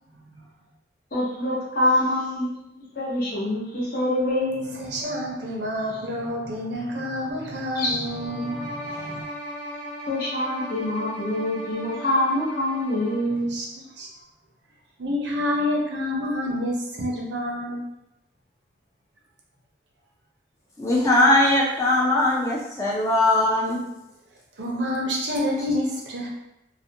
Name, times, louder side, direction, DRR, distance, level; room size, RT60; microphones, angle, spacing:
voice 1, 0.1-0.5 4.7-9.2 13.3-13.7 13.9-14.1 15.0-17.8 24.5-26.3, left 1 dB, 80° right, -1 dB, 0.6 m, -28 dB
voice 2, 1.1-4.8 7.8-8.0 10.1-13.5, left 1 dB, 55° left, -6 dB, 0.8 m, -25 dB
sound 1, 8.0-13.4, equal, 85° left, 1.0 m, -37 dB
voice 3, 20.8-23.8, left 1 dB, 15° left, -5 dB, 0.3 m, -20 dB
2.4 x 2.1 x 2.7 m, 0.88 s
head